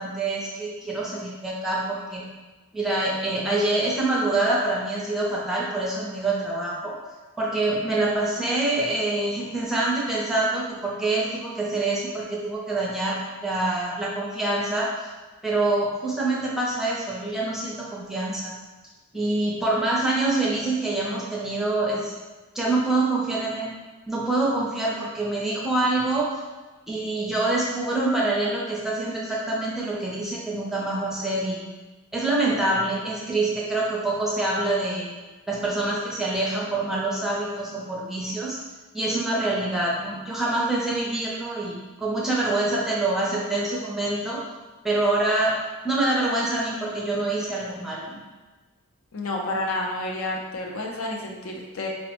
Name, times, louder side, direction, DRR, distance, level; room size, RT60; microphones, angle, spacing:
voice 1, 0.0-2.2 2.7-6.9 7.4-14.9 15.4-18.5 19.1-22.1 22.5-23.7 24.1-26.3 26.9-31.7 32.1-35.1 35.5-38.6 38.9-44.4 44.8-45.6 45.8-48.2, right 2 dB, ahead, -5 dB, 0.5 m, -25 dB
voice 2, 49.1-51.9, left 2 dB, 65° left, 0 dB, 0.5 m, -30 dB
4.1 x 2.0 x 2.9 m, 1.2 s
head